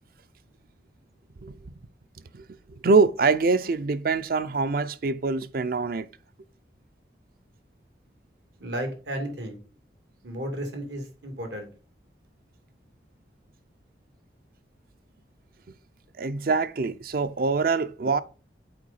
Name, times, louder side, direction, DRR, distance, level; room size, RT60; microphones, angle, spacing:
voice 1, 2.3-6.1 16.2-18.2, right 4 dB, 55° right, 0.5 m, -24 dB
voice 2, 8.6-9.6 10.2-11.7, equal, 80° right, 2.2 m, -33 dB
7.7 x 4.7 x 4.1 m
head